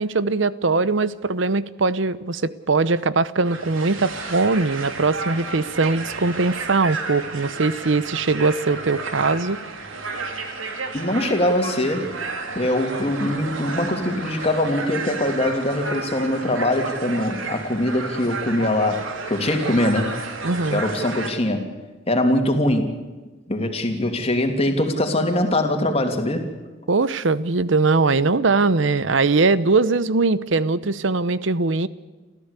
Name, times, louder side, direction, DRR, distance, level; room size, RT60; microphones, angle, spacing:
voice 1, 0.0-9.6 20.4-20.8 26.9-31.9, right 3 dB, 65° right, 17 dB, 0.8 m, -21 dB
sound 1, 3.4-21.3, right 3 dB, 85° right, 3.1 m, -32 dB
voice 2, 10.9-12.2 12.5-20.1 20.7-21.7 22.1-22.9 23.5-26.5, left 1 dB, 30° left, 4 dB, 2.7 m, -22 dB
29.0 x 14.5 x 8.3 m, 1.2 s
head